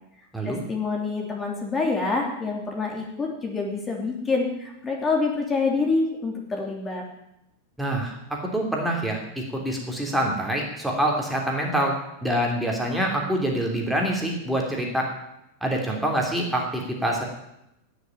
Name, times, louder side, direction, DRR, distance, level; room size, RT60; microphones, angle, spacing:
voice 1, 0.4-7.0, left 3 dB, 20° left, 0 dB, 3.1 m, -26 dB
voice 2, 7.8-12.0 12.2-15.1 15.6-17.2, right 1 dB, 5° right, -1 dB, 3.2 m, -26 dB
17.0 x 7.0 x 9.2 m, 0.85 s
supercardioid pair, 130°, 0 cm